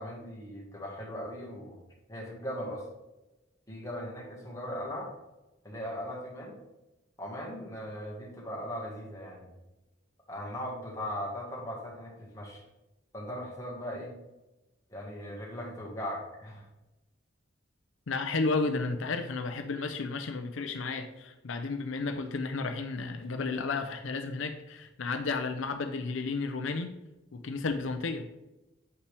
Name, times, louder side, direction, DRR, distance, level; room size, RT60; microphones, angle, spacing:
voice 1, 0.0-1.8 2.1-2.9 3.7-5.1 5.6-6.6 7.2-9.5 10.3-12.6 13.1-14.1 14.9-16.7, equal, 15° left, -2 dB, 1.7 m, -39 dB
voice 2, 18.1-27.0 27.3-28.3, left 3 dB, 80° left, 7 dB, 0.6 m, -32 dB
8.1 x 5.5 x 3.4 m, 1.0 s
head